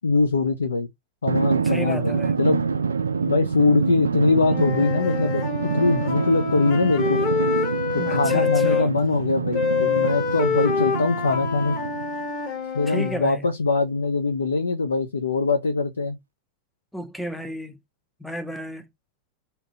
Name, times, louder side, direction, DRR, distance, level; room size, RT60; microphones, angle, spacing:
voice 1, 0.0-0.9 1.2-2.6 3.3-7.2 7.9-11.8 12.7-16.2, left 3 dB, 75° left, 0.4 m, -22 dB
Drum, 1.3-12.3, right 5 dB, 70° right, 0.4 m, -26 dB
voice 2, 1.6-2.4 8.0-8.9 12.9-13.5 16.9-17.8 18.2-18.9, equal, ahead, 0.6 m, -33 dB
Wind instrument woodwind instrument, 4.4-8.9 9.5-13.2, left 6 dB, 35° left, 0.9 m, -26 dB
2.8 x 2.2 x 2.8 m
figure-of-eight pair, 90°, 0 cm